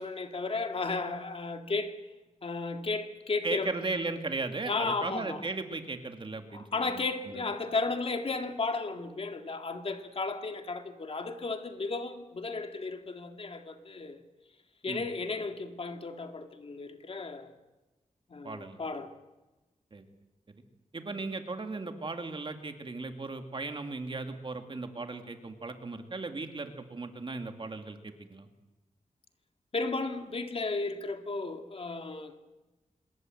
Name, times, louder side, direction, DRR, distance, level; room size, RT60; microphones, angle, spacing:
voice 1, 0.0-2.0 2.4-3.7 4.7-5.4 6.5-14.2 14.8-17.5 18.3-19.1 29.7-32.4, left 3 dB, 50° left, 2.3 m, -34 dB
voice 2, 3.4-7.4 14.9-15.0 18.4-18.8 19.9-20.0 20.9-28.5, right 3 dB, 40° right, 2.4 m, -37 dB
26.5 x 21.5 x 7.9 m
wide cardioid pair, 110°, 13 cm